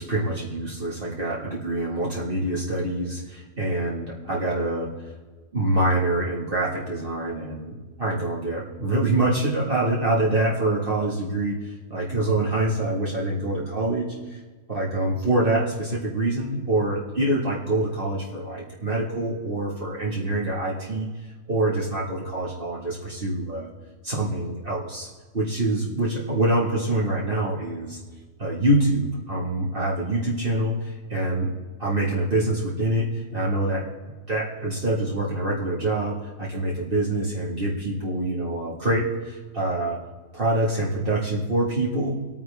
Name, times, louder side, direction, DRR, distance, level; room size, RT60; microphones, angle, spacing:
voice 1, 0.0-4.9 5.5-11.6 11.9-14.4 14.7-21.1 21.5-23.7 24.0-25.1 25.3-28.0 28.4-31.5 31.8-33.9 34.3-40.0 40.3-42.2, right 1 dB, 45° right, -5 dB, 2.0 m, -25 dB
24.5 x 9.2 x 3.4 m, 1.4 s
omnidirectional pair, 1.3 m